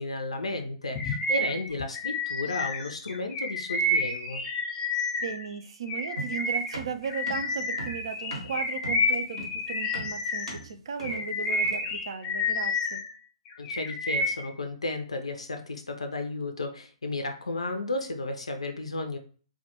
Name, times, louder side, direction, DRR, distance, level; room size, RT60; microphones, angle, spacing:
voice 1, 0.0-4.4 13.6-19.2, left 2 dB, 80° left, 5 dB, 0.4 m, -33 dB
Bird vocalization bird call bird song, 1.0-5.5 5.9-10.6 11.0-13.1 13.5-14.5, left 2 dB, 20° left, 0.5 m, -30 dB
voice 2, 5.2-13.0, right 6 dB, 60° right, 9 dB, 0.3 m, -36 dB
sound 1, 6.2-12.0, right 2 dB, 75° right, 0.9 m, -40 dB
2.2 x 2.1 x 2.8 m, 0.41 s
figure-of-eight pair, 125°, 3 cm